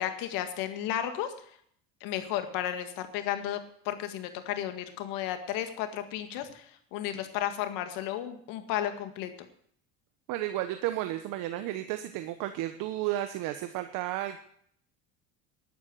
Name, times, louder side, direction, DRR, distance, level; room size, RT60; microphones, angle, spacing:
voice 1, 0.0-1.3 2.0-3.6 3.9-9.3, left 11 dB, 70° left, 8 dB, 1.9 m, -33 dB
voice 2, 10.3-14.4, right 14 dB, 65° right, 9 dB, 1.1 m, -33 dB
11.5 x 11.0 x 6.4 m, 0.64 s
supercardioid pair, 85°, 35 cm